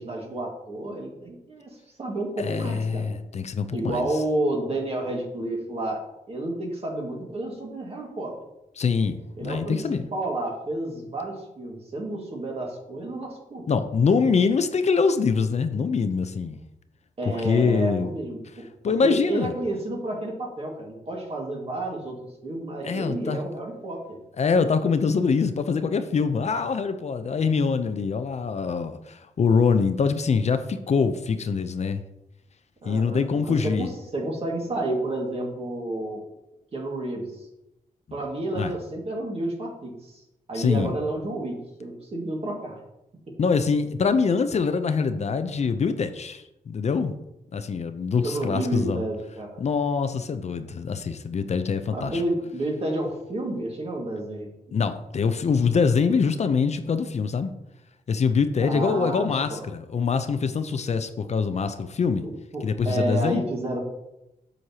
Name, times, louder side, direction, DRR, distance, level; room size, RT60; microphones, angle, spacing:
voice 1, 0.0-1.7 2.0-3.2 3.7-6.0 6.3-8.3 9.4-13.7 17.2-18.6 19.0-24.2 32.8-36.2 36.7-37.3 38.1-40.2 40.5-42.8 43.3-43.4 48.2-49.6 51.9-54.8 58.6-59.6 62.2-63.8, right 1 dB, 45° right, 0 dB, 1.9 m, -30 dB
voice 2, 2.4-4.1 8.8-10.1 13.7-16.6 17.4-18.1 18.8-19.5 22.8-23.4 24.4-32.0 32.8-33.9 38.6-38.7 40.5-40.9 43.4-47.1 47.5-49.0 49.6-52.2 54.7-57.5 58.1-62.2 62.6-63.4, left 5 dB, 50° left, 9 dB, 0.5 m, -24 dB
7.7 x 6.4 x 2.8 m, 0.90 s
wide cardioid pair, 100°, 14 cm